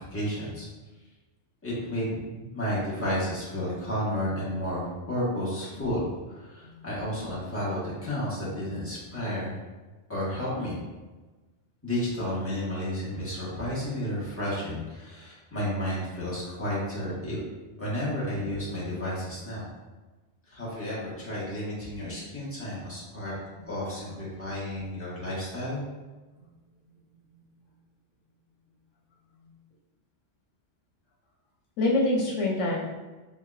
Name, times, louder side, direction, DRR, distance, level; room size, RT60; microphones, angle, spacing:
voice 1, 0.1-0.7 1.6-9.6 10.1-10.8 11.8-17.4 17.8-19.7 20.5-23.3 23.6-25.8, equal, 10° left, -9 dB, 1.3 m, -32 dB
voice 2, 31.8-32.8, left 2 dB, 85° left, -2 dB, 1.2 m, -26 dB
3.7 x 3.5 x 2.4 m, 1.2 s
omnidirectional pair, 1.2 m